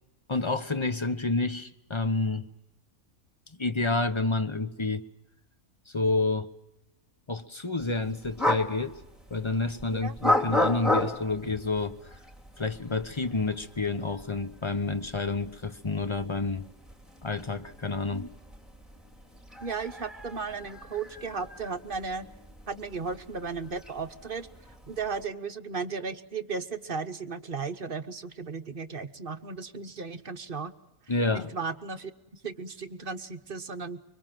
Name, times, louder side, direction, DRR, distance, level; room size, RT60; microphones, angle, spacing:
voice 1, 0.3-2.5 3.6-5.0 5.9-6.5 7.3-9.0 9.3-12.0 12.6-16.7 17.2-18.3 31.1-31.5, left 3 dB, 20° left, 10 dB, 1.0 m, -29 dB
sound 1, 7.8-25.3, left 1 dB, ahead, 2.7 m, -35 dB
voice 2, 19.6-22.3 22.7-24.5 24.9-30.7 31.3-34.0, right 4 dB, 40° right, 9 dB, 1.2 m, -35 dB
25.0 x 24.0 x 7.6 m, 0.93 s
omnidirectional pair, 1.5 m